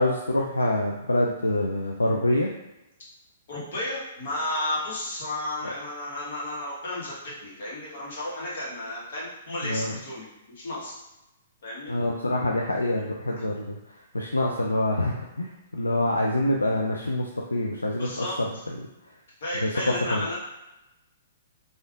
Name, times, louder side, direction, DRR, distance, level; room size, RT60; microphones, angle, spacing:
voice 1, 0.0-2.5 5.6-5.7 9.6-10.0 11.9-13.8 14.1-18.5 19.6-19.7 20.1-20.2, left 1 dB, 90° left, -1 dB, 0.3 m, -26 dB
voice 2, 3.5-10.9 11.6-11.9 13.4-13.5 18.0-18.4 19.4-20.3, left 1 dB, 60° left, -6 dB, 1.3 m, -33 dB
3.3 x 2.5 x 2.4 m, 0.96 s
figure-of-eight pair, 120°, 0 cm